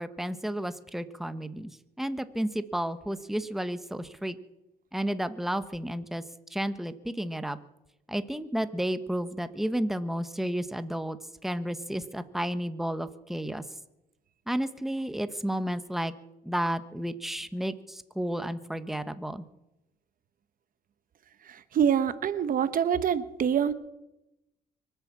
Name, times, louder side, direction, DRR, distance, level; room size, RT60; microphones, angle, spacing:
voice 1, 0.0-1.7 2.0-4.4 4.9-6.2 6.5-7.6 8.1-11.2 11.4-13.6 14.5-16.1 16.4-19.5, right 1 dB, ahead, 11 dB, 1.0 m, -32 dB
voice 2, 21.5-23.7, right 8 dB, 60° right, 13 dB, 1.0 m, -25 dB
24.0 x 8.1 x 7.3 m, 0.93 s
cardioid pair, 90°, 16 cm